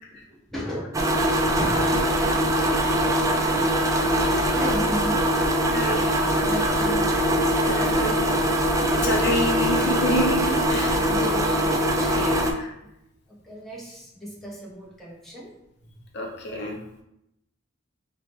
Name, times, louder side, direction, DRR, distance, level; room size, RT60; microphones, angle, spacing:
voice 1, 0.1-0.9 1.4-1.9 4.5-5.3 6.4-7.1 10.6-12.4 13.3-15.5, equal, ahead, -6 dB, 0.9 m, -35 dB
sound 1, 0.9-12.5, equal, 15° right, 0.3 m, -22 dB
voice 2, 5.6-6.2 7.6-8.3 8.9-11.0 12.1-12.7 16.1-17.0, equal, 60° left, 0 dB, 0.6 m, -28 dB
4.7 x 2.2 x 3.1 m, 0.84 s
head